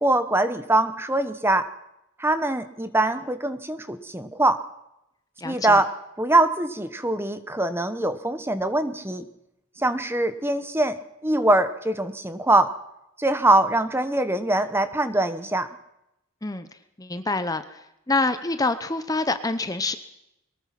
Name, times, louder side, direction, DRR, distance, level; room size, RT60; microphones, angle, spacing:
voice 1, 0.0-1.7 2.2-4.6 5.4-5.9 6.2-9.2 9.8-12.7 13.2-15.7, right 2 dB, 10° right, 11 dB, 1.0 m, -23 dB
voice 2, 5.4-5.8 16.4-16.7 17.0-17.6 18.1-20.0, left 3 dB, 15° left, 11 dB, 0.8 m, -26 dB
22.5 x 19.5 x 5.9 m, 0.85 s
head